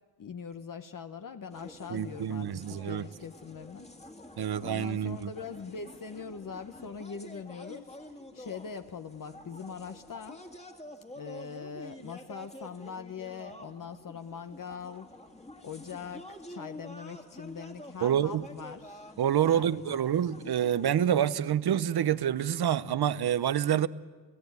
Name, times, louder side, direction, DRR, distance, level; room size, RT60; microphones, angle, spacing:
voice 1, 0.2-3.9 4.6-8.0 8.3-10.4 11.1-15.1 15.6-19.1 19.4-20.0, left 6 dB, 50° left, 1.0 m, -42 dB
sound 1, 1.5-21.3, left 1 dB, 15° left, 2.0 m, -48 dB
voice 2, 1.9-3.1 4.4-5.3 18.0-18.4 19.2-23.9, right 10 dB, 65° right, 0.8 m, -27 dB
29.0 x 17.0 x 9.5 m
wide cardioid pair, 125°, 42 cm